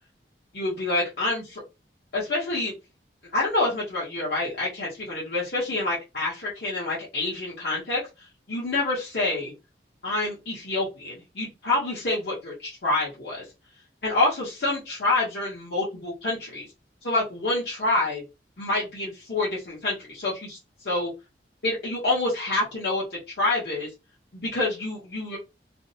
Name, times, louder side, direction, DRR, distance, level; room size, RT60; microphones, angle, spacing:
voice 1, 0.5-1.6 2.1-2.7 3.3-8.0 8.5-9.5 10.0-13.4 14.0-16.6 17.0-18.2 18.6-20.6 20.8-21.1 21.6-23.0 23.4-23.9 24.3-25.4, left 2 dB, 70° left, -6 dB, 0.9 m, -27 dB
2.6 x 2.0 x 2.6 m, 0.26 s
head